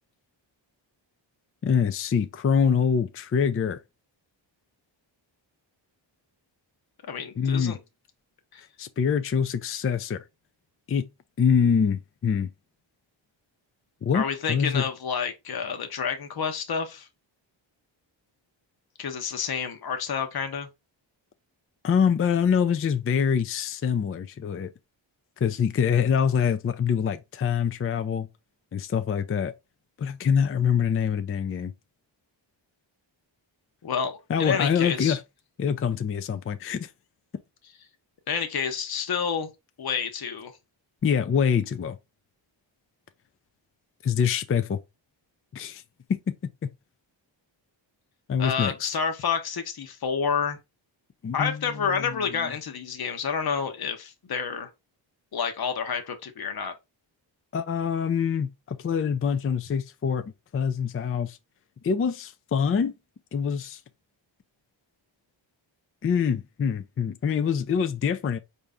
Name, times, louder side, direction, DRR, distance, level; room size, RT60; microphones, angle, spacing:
voice 1, 1.6-3.8 7.4-7.8 8.8-10.2 10.9-11.1 11.4-12.5 14.0-14.9 21.8-24.7 25.4-28.3 28.7-29.5 30.0-31.7 34.3-35.2 35.6-36.9 41.0-42.0 44.0-44.8 45.5-45.8 46.1-46.2 46.6-46.7 48.3-48.9 51.2-52.5 57.5-61.4 61.8-62.9 63.3-63.8 66.0-68.4, left 7 dB, 30° left, 0.4 m, -25 dB
voice 2, 7.1-7.8 8.5-8.6 14.1-17.1 19.0-20.7 33.8-35.2 38.3-39.5 39.8-40.5 48.4-50.6 51.3-54.7 55.3-56.7, left 6 dB, 50° left, 0.9 m, -29 dB
4.5 x 2.7 x 3.4 m
cardioid pair, 70°, 47 cm